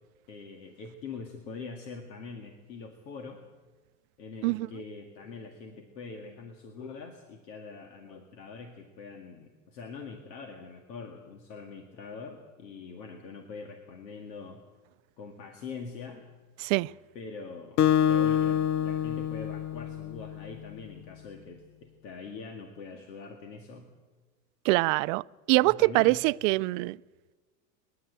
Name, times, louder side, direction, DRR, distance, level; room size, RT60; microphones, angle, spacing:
voice 1, 0.3-3.5 4.2-14.6 15.2-16.3 17.1-23.9 25.6-26.2, left 4 dB, 85° left, 2.3 m, -43 dB
Acoustic guitar, 17.8-20.5, left 10 dB, 65° left, 1.1 m, -26 dB
voice 2, 24.7-27.0, right 23 dB, 55° right, 0.5 m, -24 dB
28.0 x 11.5 x 8.2 m
supercardioid pair, 115°, 49 cm